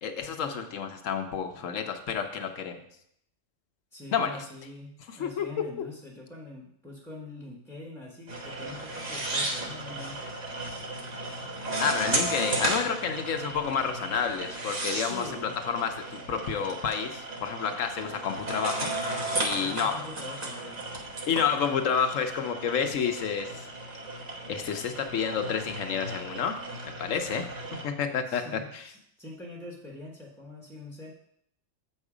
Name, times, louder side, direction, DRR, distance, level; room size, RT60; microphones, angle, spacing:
voice 1, 0.0-2.8 4.1-4.3 5.1-5.5 11.8-20.0 21.3-23.7 24.5-26.6 27.0-27.5 27.8-28.9, left 7 dB, 80° left, 7 dB, 1.2 m, -30 dB
voice 2, 3.9-10.2 11.7-12.5 15.0-15.5 19.5-20.8 28.3-31.1, left 2 dB, ahead, -2 dB, 1.0 m, -44 dB
sound 1, 8.3-27.9, right 2 dB, 35° right, 1.1 m, -35 dB
7.6 x 5.4 x 4.9 m, 0.72 s
omnidirectional pair, 1.3 m